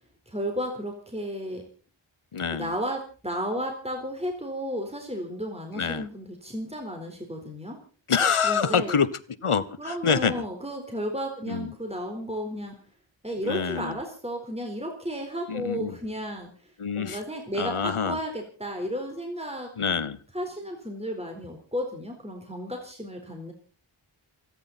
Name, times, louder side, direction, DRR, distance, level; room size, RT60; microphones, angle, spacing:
voice 1, 0.3-1.6 2.5-7.8 8.4-9.0 9.8-12.8 13.2-16.5 17.0-19.7 20.3-23.5, equal, 10° right, 3 dB, 4.1 m, -33 dB
voice 2, 2.3-2.7 5.7-6.1 8.1-9.1 9.4-10.4 11.5-11.7 13.4-13.9 15.5-16.0 16.8-17.2 17.6-18.2 19.8-20.2, left 6 dB, 85° left, 14 dB, 1.1 m, -26 dB
28.0 x 10.5 x 4.2 m, 0.39 s
wide cardioid pair, 45°, 49 cm